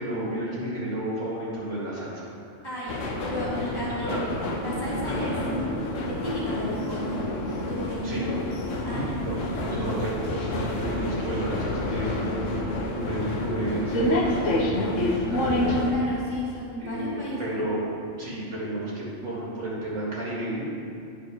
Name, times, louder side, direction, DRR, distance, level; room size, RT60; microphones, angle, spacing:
voice 1, 0.0-2.3 3.9-4.3 5.0-5.4 8.0-8.3 8.7-12.4 12.9-15.8 16.8-17.8 18.2-20.6, right 1 dB, 70° right, -6 dB, 2.3 m, -32 dB
voice 2, 2.6-4.3 4.6-5.3 6.1-7.2 7.7-8.3 8.8-9.1 15.8-17.6, equal, 20° left, -6 dB, 2.0 m, -34 dB
sound 1, 2.9-15.9, left 1 dB, 75° left, 1.2 m, -28 dB
8.8 x 4.6 x 6.1 m, 2.4 s
omnidirectional pair, 1.3 m